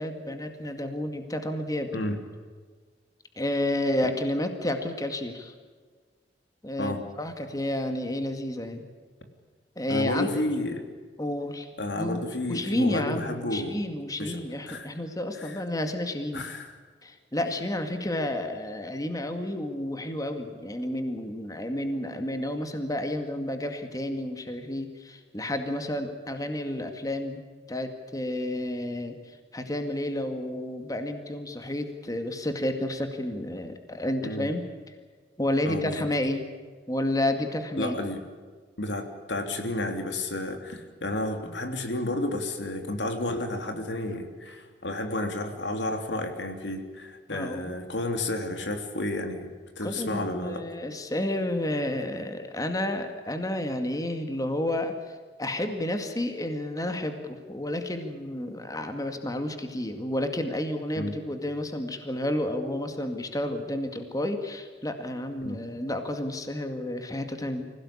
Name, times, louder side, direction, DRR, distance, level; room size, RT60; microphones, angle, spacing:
voice 1, 0.0-1.9 3.4-5.5 6.6-8.8 9.8-10.3 11.2-12.2 12.5-16.5 17.0-27.4 27.7-29.1 29.5-34.7 35.4-36.4 36.9-38.0 47.3-47.7 49.8-54.9 55.4-67.7, left 1 dB, 20° left, 6 dB, 2.1 m, -31 dB
voice 2, 9.9-10.8 11.8-13.8 14.2-14.4 14.7-14.9 15.4-15.6 16.3-16.7 34.2-34.5 35.6-36.1 37.8-38.2 38.8-50.6 61.0-61.1 65.4-65.6, left 1 dB, 90° left, 5 dB, 3.2 m, -31 dB
25.5 x 17.0 x 8.6 m, 1.5 s
head